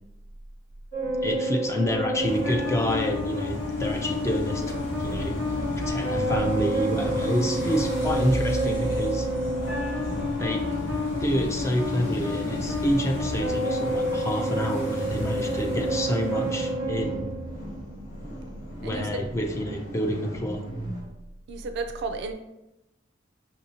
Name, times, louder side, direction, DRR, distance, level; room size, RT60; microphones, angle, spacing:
sound 1, 0.9-17.9, equal, 85° left, 1.4 m, -29 dB
voice 1, 1.2-4.6 5.0-5.4 5.8-9.3 10.4-10.7 11.2-17.3 18.8-20.6, equal, 15° left, 3 dB, 0.3 m, -28 dB
sound 2, 1.8-21.1, equal, 45° left, 1.1 m, -38 dB
sound 3, 2.2-16.7, equal, 60° left, 0.8 m, -36 dB
voice 2, 18.8-19.2 21.5-22.3, right 3 dB, 60° right, 7 dB, 0.4 m, -32 dB
5.3 x 2.7 x 2.8 m, 0.90 s
head